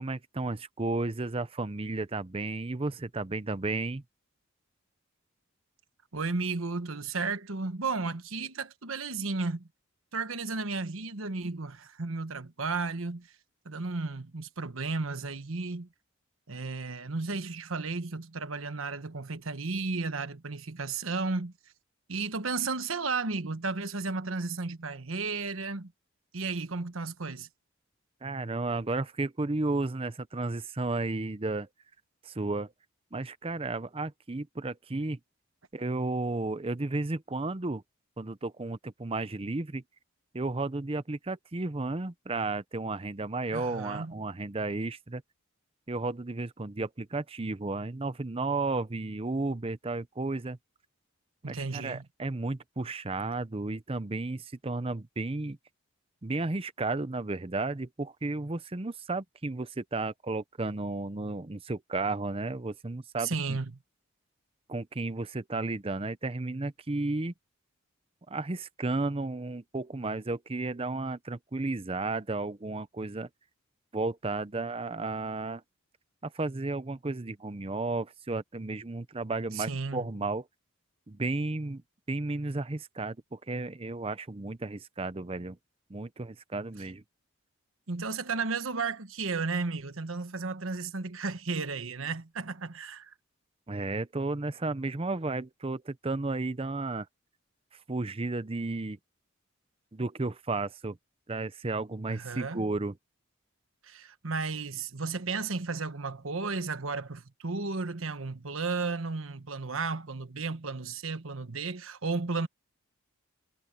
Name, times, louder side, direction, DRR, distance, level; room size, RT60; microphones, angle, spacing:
voice 1, 0.0-4.0 28.2-31.7 32.2-32.7 33.1-35.2 35.7-37.8 38.2-39.8 40.3-45.2 45.9-50.6 51.5-55.6 56.2-63.6 64.7-67.3 68.3-73.3 73.9-75.6 76.2-80.4 81.1-81.8 82.1-85.6 85.9-87.0 93.7-97.1 97.9-99.0 99.9-101.0 101.3-102.9, right 2 dB, 30° right, 0.7 m, -33 dB
voice 2, 6.1-9.7 10.1-13.3 13.6-15.9 16.5-21.5 22.1-25.9 26.3-27.5 43.5-44.1 51.4-52.0 63.2-63.8 79.5-80.1 87.9-93.1 102.1-102.6 103.8-112.5, right 4 dB, 80° right, 1.3 m, -33 dB
head